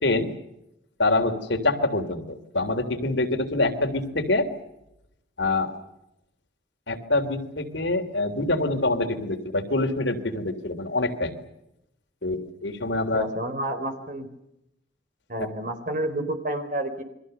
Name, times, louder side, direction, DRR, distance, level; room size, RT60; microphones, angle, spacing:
voice 1, 0.0-0.3 1.0-4.5 5.4-5.7 6.9-11.3 12.2-13.3 15.4-15.5, left 2 dB, 75° left, 5 dB, 3.4 m, -25 dB
voice 2, 13.1-14.3 15.3-17.0, right 1 dB, 45° right, 7 dB, 4.0 m, -30 dB
29.0 x 23.0 x 6.7 m, 0.85 s
head